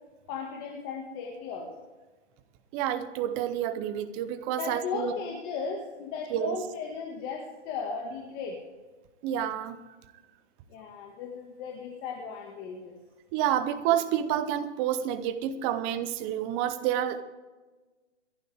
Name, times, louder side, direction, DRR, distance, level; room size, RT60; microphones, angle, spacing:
voice 1, 0.3-1.7 4.6-8.6 10.7-12.9, left 5 dB, 25° left, 1 dB, 1.8 m, -36 dB
voice 2, 2.7-5.1 6.3-6.6 9.2-9.8 13.3-17.2, right 10 dB, 15° right, 11 dB, 0.5 m, -29 dB
26.5 x 11.5 x 3.5 m, 1.2 s
hypercardioid pair, 150°, 35 cm